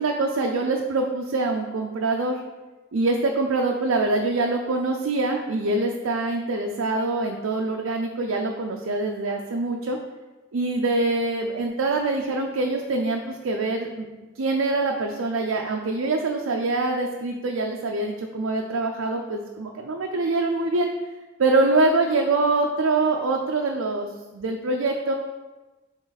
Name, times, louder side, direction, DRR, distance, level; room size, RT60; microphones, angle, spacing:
voice 1, 0.0-2.4 2.9-10.0 10.5-14.1 14.4-20.9 21.4-24.1 24.3-25.1, right 2 dB, 80° right, 1 dB, 0.5 m, -24 dB
7.1 x 3.7 x 4.1 m, 1.2 s
head